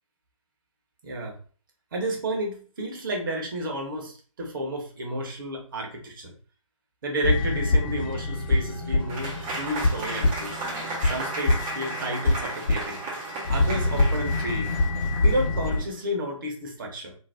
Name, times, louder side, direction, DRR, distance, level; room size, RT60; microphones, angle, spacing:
voice 1, 1.0-1.4 1.9-6.4 7.0-10.6 11.0-13.0 13.5-14.8 15.2-17.2, right 1 dB, 40° right, 1 dB, 0.9 m, -31 dB
sound 1, 7.2-15.8, left 2 dB, 40° left, 0.9 m, -26 dB
Applause / Crowd, 9.1-15.9, right 2 dB, 15° right, 0.6 m, -35 dB
2.6 x 2.1 x 3.4 m, 0.42 s
figure-of-eight pair, 145°, 17 cm